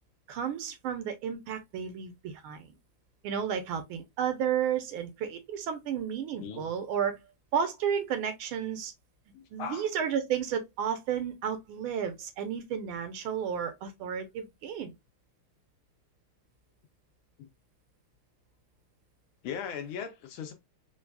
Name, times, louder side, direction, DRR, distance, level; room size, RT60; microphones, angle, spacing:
voice 1, 0.3-2.7 3.2-7.2 7.5-8.9 9.5-14.9, right 8 dB, 75° right, 1.5 m, -32 dB
voice 2, 9.3-9.9 17.4-17.5 19.4-20.5, left 7 dB, 75° left, 1.5 m, -38 dB
4.7 x 2.3 x 2.2 m
omnidirectional pair, 2.4 m